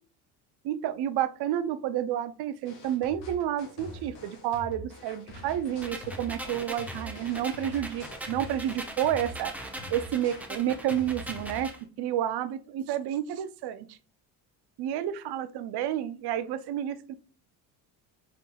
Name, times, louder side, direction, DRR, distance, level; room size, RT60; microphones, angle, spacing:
voice 1, 0.6-9.5 9.9-11.7 12.0-14.0 14.8-17.1, right 11 dB, 60° right, 12 dB, 0.6 m, -30 dB
sound 1, 2.6-11.7, left 1 dB, 85° left, 1.4 m, -44 dB
sound 2, 5.8-11.8, right 1 dB, 5° right, 0.8 m, -41 dB
4.4 x 3.7 x 2.2 m, 0.38 s
supercardioid pair, 85°, 46 cm